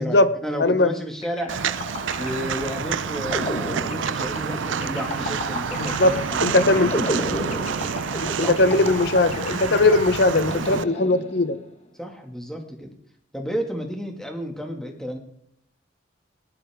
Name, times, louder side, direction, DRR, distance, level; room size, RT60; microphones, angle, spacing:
voice 1, 0.0-1.8 2.1-7.3 8.4-8.6 12.0-12.9 13.3-15.2, equal, 5° left, 2 dB, 1.9 m, -32 dB
sound 1, 1.2-11.7, left 1 dB, 35° left, 1.3 m, -33 dB
Walk footsteps, 1.5-10.8, right 6 dB, 80° right, 0.5 m, -28 dB
voice 2, 5.8-6.1 6.4-6.9 8.1-11.6, left 2 dB, 60° left, 13 dB, 0.8 m, -19 dB
19.0 x 11.5 x 3.6 m, 0.68 s
head